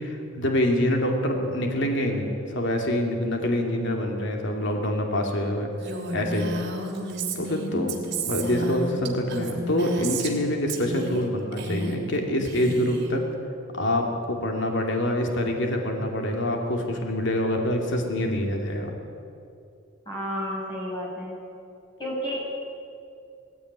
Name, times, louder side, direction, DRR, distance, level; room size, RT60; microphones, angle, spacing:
voice 1, 0.0-5.7 6.1-6.5 7.4-13.2 13.7-18.9, left 1 dB, 65° left, 2 dB, 2.7 m, -26 dB
Female speech woman speaking, 5.8-10.4 10.7-11.3 11.5-12.2 12.4-13.1, right 2 dB, 55° right, 3.1 m, -32 dB
voice 2, 20.1-21.4 22.0-22.4, equal, 25° left, -4 dB, 7.2 m, -31 dB
18.5 x 16.0 x 9.6 m, 2.5 s
head